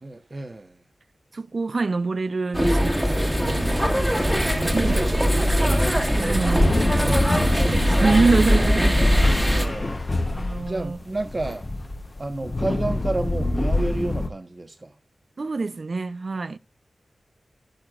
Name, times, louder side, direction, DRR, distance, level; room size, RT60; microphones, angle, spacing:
voice 1, 0.0-0.8 3.7-5.3 7.4-8.0 8.8-8.9 9.5-11.7 12.1-14.9, right 2 dB, 35° right, 1.2 m, -31 dB
voice 2, 1.3-3.4 4.7-5.0 6.1-7.5 8.0-9.0 10.3-11.0 15.4-16.6, right 3 dB, 55° right, 0.6 m, -25 dB
sound 1, 2.5-9.7, equal, 5° right, 1.6 m, -21 dB
sound 2, 3.4-8.4, right 2 dB, 90° right, 2.1 m, -36 dB
sound 3, 6.6-14.3, left 2 dB, 30° left, 1.0 m, -26 dB
13.0 x 10.5 x 2.5 m
wide cardioid pair, 95°, 0 cm